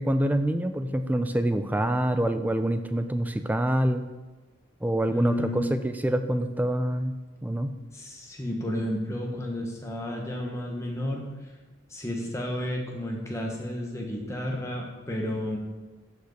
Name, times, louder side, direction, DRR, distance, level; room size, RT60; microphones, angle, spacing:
voice 1, 0.0-4.0 4.8-7.7, right 1 dB, 10° right, 8 dB, 0.3 m, -26 dB
voice 2, 5.1-5.7 7.9-11.2 11.9-15.6, left 1 dB, 15° left, -1 dB, 1.2 m, -32 dB
6.6 x 4.9 x 6.5 m, 1.2 s
head